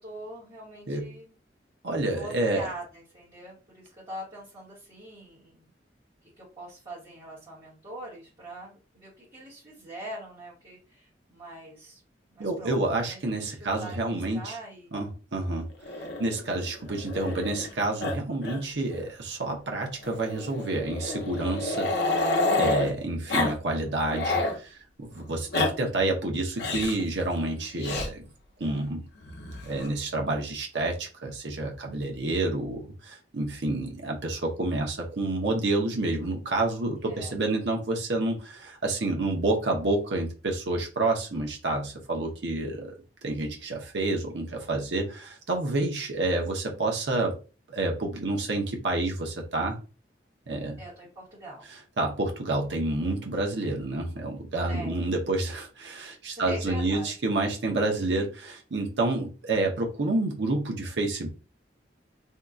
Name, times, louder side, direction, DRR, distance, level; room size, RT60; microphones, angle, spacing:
voice 1, 0.0-1.4 2.1-5.7 6.2-12.0 12.3-13.2 13.5-14.9 36.9-37.4 50.8-51.7 54.6-55.0 56.3-57.1, right 1 dB, 30° right, -9 dB, 1.2 m, -43 dB
voice 2, 1.8-2.7 12.4-14.6 14.9-15.7 16.2-22.3 22.6-28.2 28.6-29.1 29.6-42.9 43.2-47.3 47.7-49.8 50.5-50.8 52.0-61.3, right 2 dB, 70° right, 1 dB, 0.8 m, -29 dB
Growling, 15.8-17.7 18.0-18.2 18.4-18.6 18.9-19.0 20.0-22.9 23.3-23.6 23.9-24.6 25.3-25.7 26.6-27.0 27.8-28.1 29.2-29.9, left 2 dB, 65° left, 0.7 m, -29 dB
2.8 x 2.3 x 3.6 m, 0.34 s
head